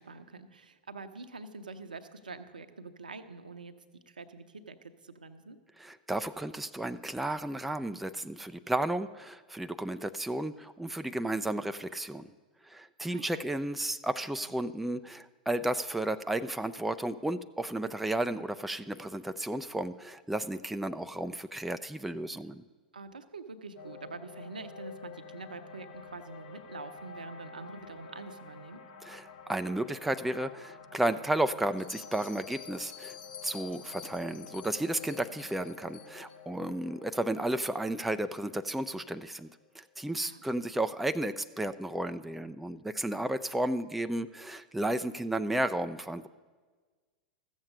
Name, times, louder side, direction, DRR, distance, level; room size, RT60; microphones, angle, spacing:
voice 1, 0.0-4.8 5.0-5.6 13.1-13.4 22.9-28.8 40.2-40.4, right 3 dB, 75° right, 9 dB, 0.7 m, -45 dB
voice 2, 5.8-12.3 12.6-22.6 29.0-33.2 33.4-39.5 39.7-46.3, right 1 dB, 5° right, 10 dB, 0.3 m, -33 dB
sound 1, 23.8-40.0, left 5 dB, 55° left, 1.4 m, -50 dB
Bell, 31.7-36.4, left 8 dB, 30° left, 0.6 m, -49 dB
14.0 x 7.2 x 6.6 m, 1.4 s
figure-of-eight pair, 90°, 5 cm